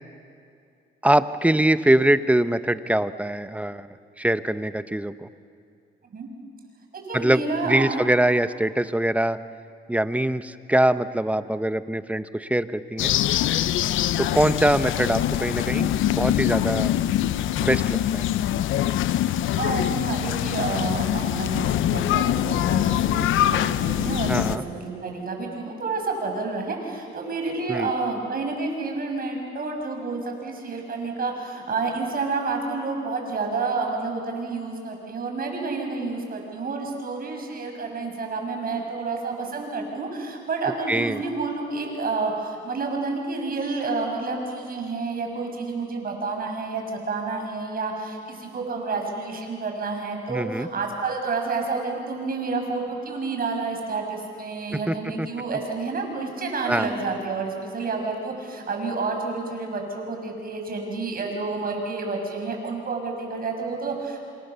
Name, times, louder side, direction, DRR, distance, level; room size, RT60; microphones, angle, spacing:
voice 1, 1.0-3.9 4.2-5.3 7.1-9.4 9.9-13.1 14.2-16.9 17.6-18.3 24.3-24.6 27.7-27.9 40.9-41.2 50.3-50.7 54.7-55.3 56.7-56.9, right 1 dB, 5° right, 12 dB, 1.0 m, -23 dB
voice 2, 7.1-8.0 19.6-64.2, right 3 dB, 45° right, 2 dB, 6.3 m, -29 dB
sound 1, 13.0-24.6, left 12 dB, 80° left, 0.8 m, -24 dB
27.5 x 27.0 x 7.0 m, 2.4 s
cardioid pair, 90°, 20 cm